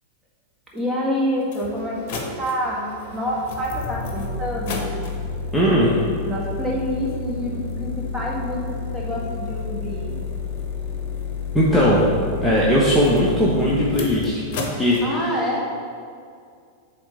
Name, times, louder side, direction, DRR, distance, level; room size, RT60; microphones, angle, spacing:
voice 1, 0.7-2.9 3.1-4.9 6.2-10.1 15.0-15.7, equal, 15° right, -4 dB, 1.8 m, -27 dB
sound 1, 0.8-0.9 1.4-15.0, left 4 dB, 50° left, 1.1 m, -30 dB
voice 2, 5.5-6.1 11.5-12.0 12.4-15.0, equal, 5° left, -7 dB, 1.1 m, -18 dB
7.8 x 3.6 x 5.5 m, 2.2 s
figure-of-eight pair, 90°, 0 cm